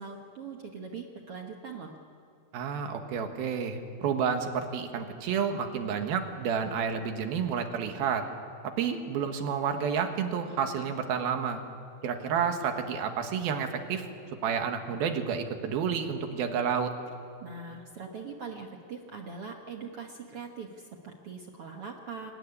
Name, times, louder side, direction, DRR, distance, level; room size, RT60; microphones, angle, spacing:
voice 1, 0.0-1.9 17.4-22.3, right 5 dB, 55° right, 2 dB, 1.6 m, -41 dB
voice 2, 2.5-8.2 8.6-11.6 12.0-14.0 14.4-16.9, right 7 dB, 80° right, 6 dB, 3.3 m, -30 dB
24.5 x 18.0 x 9.8 m, 2.5 s
omnidirectional pair, 4.3 m